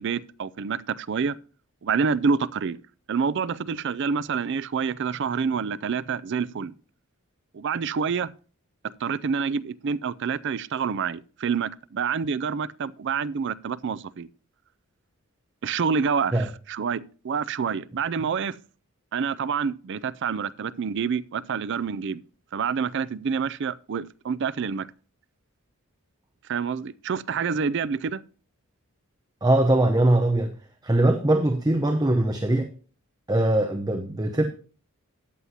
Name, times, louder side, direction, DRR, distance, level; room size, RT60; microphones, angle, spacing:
voice 1, 0.0-1.4 1.8-2.8 3.1-6.7 7.5-8.3 9.0-14.3 15.6-18.6 19.1-22.2 22.5-24.9 26.5-28.2, right 6 dB, 55° right, 0.4 m, -27 dB
voice 2, 29.4-30.5 30.8-32.7 33.3-34.4, right 1 dB, 15° right, 0.8 m, -21 dB
14.0 x 9.6 x 2.8 m
head